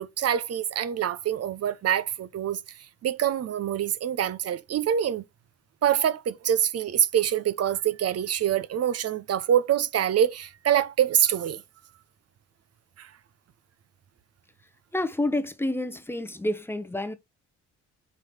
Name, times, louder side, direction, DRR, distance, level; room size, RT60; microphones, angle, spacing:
voice 1, 0.0-2.6 3.0-5.2 5.8-11.6 13.0-13.1, right 10 dB, 55° right, 0.8 m, -25 dB
voice 2, 14.9-17.1, left 1 dB, 10° left, 0.9 m, -29 dB
5.3 x 3.2 x 5.5 m
cardioid pair, 90°, 30 cm